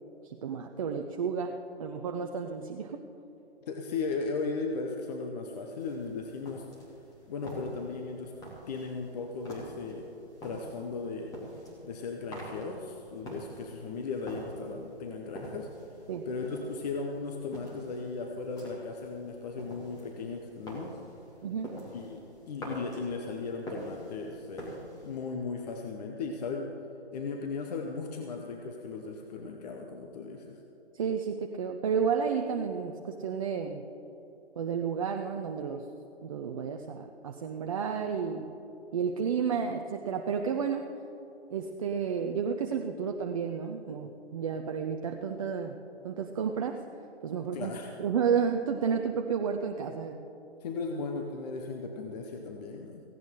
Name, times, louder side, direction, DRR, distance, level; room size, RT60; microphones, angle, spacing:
voice 1, 0.2-3.0 16.1-16.3 21.4-21.7 30.9-33.8 34.6-35.9 36.2-38.5 38.9-40.9 41.5-45.8 46.0-46.8 47.2-47.7 48.0-50.2, right 6 dB, 30° right, 4 dB, 0.6 m, -31 dB
voice 2, 3.7-6.7 7.3-8.3 8.7-10.1 10.4-11.4 11.8-15.7 16.2-21.0 21.9-24.8 25.0-26.7 27.1-30.6 47.5-47.9 50.6-53.0, left 4 dB, 40° left, 2 dB, 1.1 m, -36 dB
sound 1, 5.8-25.3, right 1 dB, 10° left, 2.8 m, -47 dB
17.5 x 16.5 x 3.8 m, 3.0 s
hypercardioid pair, 150°, 33 cm